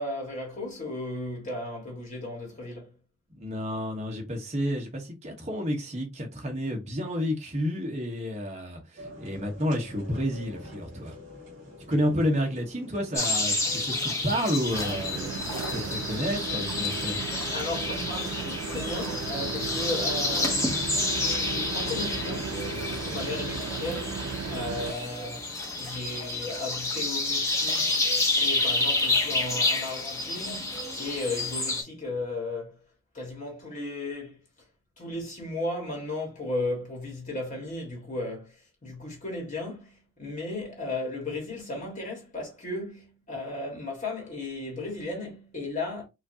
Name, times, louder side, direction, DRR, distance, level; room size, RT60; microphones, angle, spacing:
voice 1, 0.0-2.9 12.0-12.1 17.5-28.0 28.4-32.8 33.1-34.4 35.0-46.0, left 2 dB, 35° left, 1.6 m, -35 dB
voice 2, 3.3-11.2 11.9-17.2, equal, 30° right, 1.0 m, -30 dB
sound 1, 9.0-24.6, left 1 dB, 55° right, 2.3 m, -44 dB
sound 2, 13.1-31.8, left 2 dB, 15° left, 0.7 m, -29 dB
sound 3, 14.7-24.9, right 7 dB, 85° right, 0.3 m, -36 dB
4.9 x 2.6 x 2.7 m
head